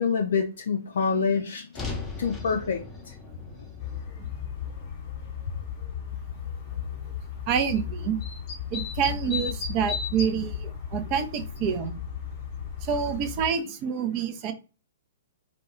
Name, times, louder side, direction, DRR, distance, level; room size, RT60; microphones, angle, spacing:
voice 1, 0.0-1.8 2.2-2.8 3.1-3.2, left 5 dB, 60° left, 3 dB, 0.3 m, -26 dB
sound 1, 1.7-6.0, left 4 dB, 10° left, 0.6 m, -39 dB
sound 2, 3.8-13.5, left 7 dB, 35° left, 0.9 m, -35 dB
voice 2, 7.5-8.2 8.7-12.0 12.8-14.5, right 7 dB, 35° right, 8 dB, 0.4 m, -27 dB
2.2 x 2.1 x 2.9 m, 0.33 s
figure-of-eight pair, 115°, 0 cm